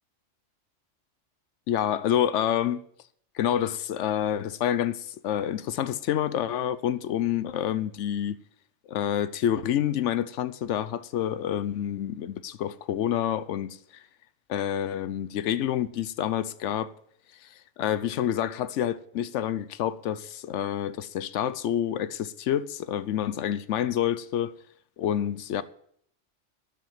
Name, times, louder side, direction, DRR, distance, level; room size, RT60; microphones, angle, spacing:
voice 1, 1.7-2.8 3.3-8.4 8.9-14.0 14.5-16.9 17.4-24.5 25.0-25.6, left 10 dB, 75° left, 0.9 m, -28 dB
12.5 x 5.6 x 8.9 m
omnidirectional pair, 1.3 m